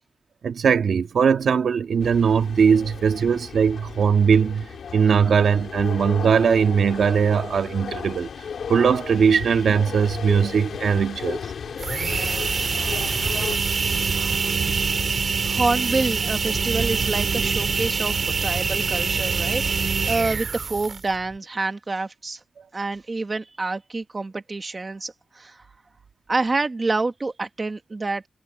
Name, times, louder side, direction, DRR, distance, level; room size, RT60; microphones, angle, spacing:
voice 1, 0.4-8.3 8.7-11.4, right 6 dB, 75° right, 2.0 m, -20 dB
sound 1, 2.0-13.6, left 6 dB, 85° left, 4.8 m, -35 dB
sound 2, 11.7-21.1, right 5 dB, 50° right, 2.9 m, -24 dB
voice 2, 14.1-14.5 15.5-22.4 22.7-25.6 26.3-28.3, right 3 dB, 30° right, 1.5 m, -27 dB
wide cardioid pair, 160°, 0 cm